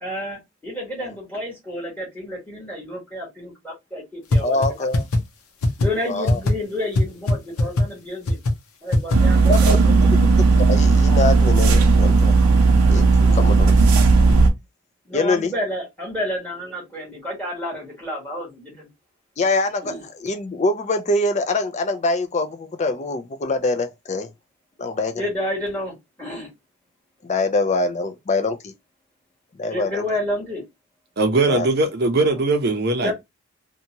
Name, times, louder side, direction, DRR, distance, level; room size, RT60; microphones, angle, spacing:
voice 1, 0.0-4.6 5.8-8.4 8.8-10.2 13.2-13.5 15.1-18.8 19.8-20.0 25.2-26.5 29.7-30.6 33.0-33.1, left 1 dB, 5° left, 1.2 m, -30 dB
sound 1, 4.3-4.4 4.6-4.7 4.9-5.2 5.6-5.9 6.3-6.5 6.9-7.0 7.3-7.4 7.6-7.8 8.3-8.5 8.9-9.2, left 1 dB, 80° left, 0.7 m, -18 dB
voice 2, 4.4-5.1 6.0-6.4 9.5-12.3 12.9-13.7 15.1-15.5 19.4-24.3 24.8-25.3 27.2-28.7 29.6-30.0 31.5-31.7, left 2 dB, 30° left, 0.4 m, -24 dB
sound 2, 9.1-14.5, right 4 dB, 85° right, 0.6 m, -15 dB
voice 3, 31.2-33.1, right 2 dB, 45° right, 0.6 m, -20 dB
2.7 x 2.2 x 2.8 m
head